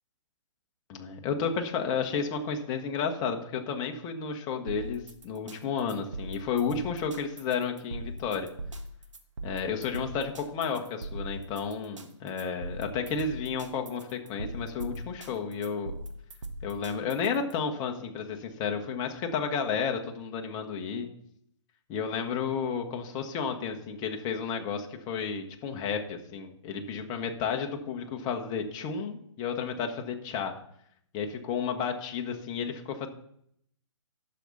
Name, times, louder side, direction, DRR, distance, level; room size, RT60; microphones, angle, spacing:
voice 1, 0.9-8.5 9.4-15.9 16.6-21.1 21.9-30.5 31.1-33.1, left 6 dB, 25° left, 4 dB, 1.3 m, -32 dB
sound 1, 4.7-17.5, right 1 dB, 75° right, 1.5 m, -40 dB
11.5 x 6.6 x 4.1 m, 0.70 s
figure-of-eight pair, 130°, 16 cm